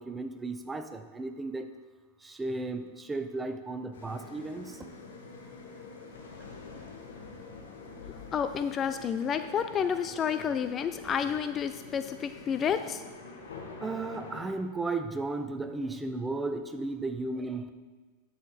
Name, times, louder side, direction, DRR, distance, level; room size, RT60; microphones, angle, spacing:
voice 1, 0.0-1.7 2.2-4.9 13.8-17.7, right 3 dB, 15° right, 8 dB, 0.7 m, -35 dB
sound 1, 3.9-14.5, left 4 dB, 75° left, 1.3 m, -46 dB
voice 2, 8.3-13.0, left 7 dB, 30° left, 10 dB, 0.4 m, -30 dB
10.0 x 6.6 x 4.4 m, 1.4 s
hypercardioid pair, 95°, 0 cm